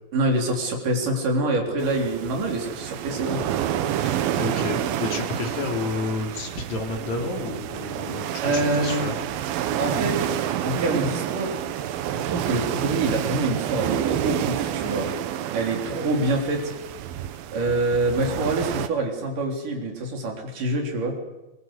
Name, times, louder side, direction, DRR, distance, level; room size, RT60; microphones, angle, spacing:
voice 1, 0.1-3.4 8.4-9.1 9.8-10.3 10.6-11.6 12.1-15.1 15.5-16.7 17.5-21.2, right 2 dB, 65° right, 2 dB, 5.2 m, -26 dB
sound 1, 1.8-18.9, right 10 dB, 85° right, 2.9 m, -29 dB
voice 2, 4.1-9.2, left 3 dB, 55° left, 3 dB, 4.3 m, -30 dB
22.5 x 22.0 x 8.2 m, 1.1 s
omnidirectional pair, 4.1 m